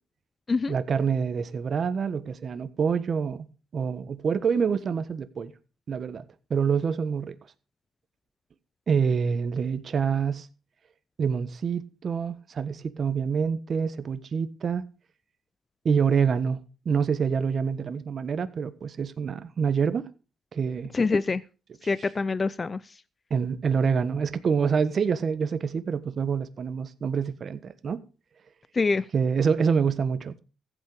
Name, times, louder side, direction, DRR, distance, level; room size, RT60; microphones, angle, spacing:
voice 1, 0.7-3.5 3.7-5.5 5.9-6.2 6.5-7.4 8.9-10.5 11.2-14.8 15.8-20.1 20.5-20.9 23.3-28.0 29.1-30.4, right 6 dB, 50° right, 1.3 m, -26 dB
voice 2, 20.9-21.4 21.8-22.8 28.7-29.0, left 4 dB, 30° left, 0.5 m, -25 dB
15.0 x 8.5 x 5.0 m
cardioid pair, 90°, 0 cm